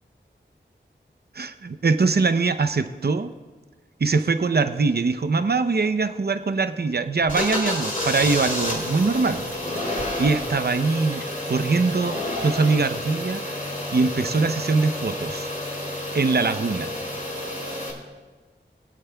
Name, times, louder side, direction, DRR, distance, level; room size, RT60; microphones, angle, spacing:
voice 1, 1.3-3.3 4.0-13.4 13.9-15.5 16.1-16.9, right 4 dB, 55° right, 9 dB, 0.7 m, -23 dB
sound 1, 7.3-17.9, left 1 dB, 45° left, 3.1 m, -30 dB
23.5 x 8.3 x 2.3 m, 1.3 s
cardioid pair, 40°, 19 cm